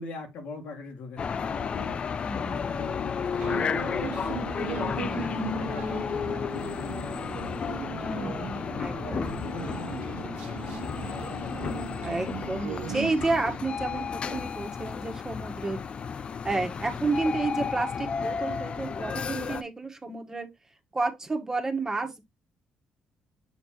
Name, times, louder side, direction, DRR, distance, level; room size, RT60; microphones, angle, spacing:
voice 1, 0.0-2.0 2.4-5.0 5.5-7.5 8.3-9.9 10.9-12.0, left 4 dB, 75° left, 2.0 m, -42 dB
sound 1, 1.2-19.6, left 6 dB, 45° left, 0.5 m, -32 dB
voice 2, 2.2-2.8 5.0-5.6 8.0-9.4 12.0-15.8 16.4-20.5 20.9-22.2, right 3 dB, 25° right, 1.5 m, -31 dB
sound 2, 3.4-13.6, right 10 dB, 90° right, 1.0 m, -38 dB
7.2 x 3.3 x 4.3 m
cardioid pair, 75°, 2 cm